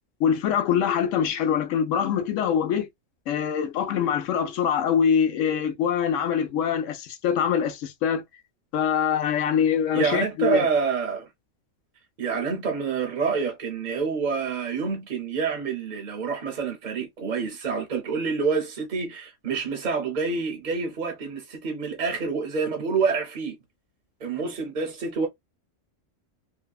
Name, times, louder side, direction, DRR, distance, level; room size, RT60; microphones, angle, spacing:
voice 1, 0.2-2.9 3.3-8.2 8.7-10.7, left 8 dB, 80° left, 0.9 m, -24 dB
voice 2, 9.9-11.3 12.2-23.6 24.2-25.3, right 5 dB, 45° right, 0.7 m, -27 dB
2.7 x 2.1 x 2.3 m
omnidirectional pair, 1.3 m